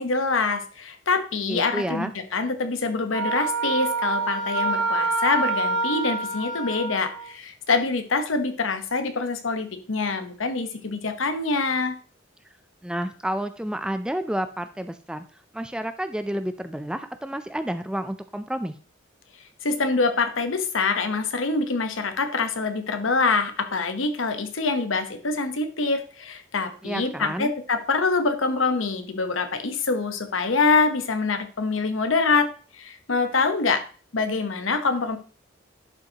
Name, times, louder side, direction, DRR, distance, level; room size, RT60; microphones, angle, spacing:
voice 1, 0.0-12.0 19.6-33.8 34.1-35.2, left 4 dB, 80° left, 8 dB, 1.0 m, -25 dB
voice 2, 1.5-2.1 12.8-15.2 15.5-18.7 26.8-27.5, right 1 dB, 5° right, 9 dB, 0.4 m, -30 dB
Wind instrument woodwind instrument, 3.1-7.3, right 3 dB, 65° right, 1.8 m, -26 dB
11.0 x 5.4 x 2.9 m, 0.38 s
head